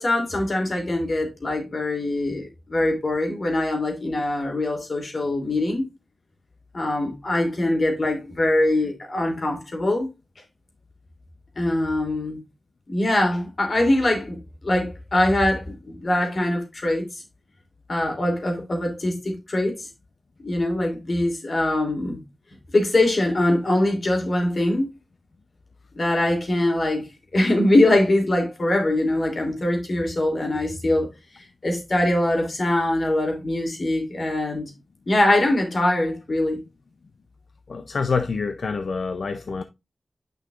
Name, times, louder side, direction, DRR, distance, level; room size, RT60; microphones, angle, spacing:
voice 1, 0.0-5.9 6.7-10.1 11.6-12.4 12.9-17.1 17.9-19.9 20.4-22.2 22.7-24.9 25.9-31.1 31.6-34.7 35.1-36.6, left 1 dB, 55° left, 2.9 m, -23 dB
voice 2, 37.7-39.6, left 4 dB, 85° left, 0.5 m, -26 dB
9.9 x 5.6 x 2.4 m
wide cardioid pair, 90°, 0 cm